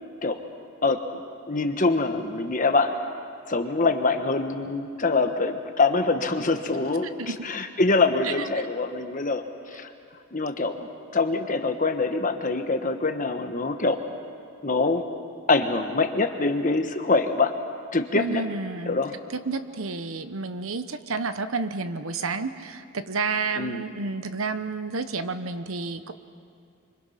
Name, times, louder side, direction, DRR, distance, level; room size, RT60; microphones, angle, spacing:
voice 1, 0.8-1.2 1.5-2.9 3.5-7.1 7.4-9.4 9.7-9.9 10.3-10.9 11.1-14.0 14.6-15.0 15.5-17.5 17.9-18.4 18.9-19.1 23.6-23.8, left 3 dB, 40° left, 7 dB, 1.3 m, -24 dB
voice 2, 7.0-7.5 8.2-8.5 18.1-19.0 19.3-26.1, right 4 dB, 80° right, 11 dB, 1.0 m, -30 dB
26.5 x 25.0 x 5.8 m, 2.4 s
head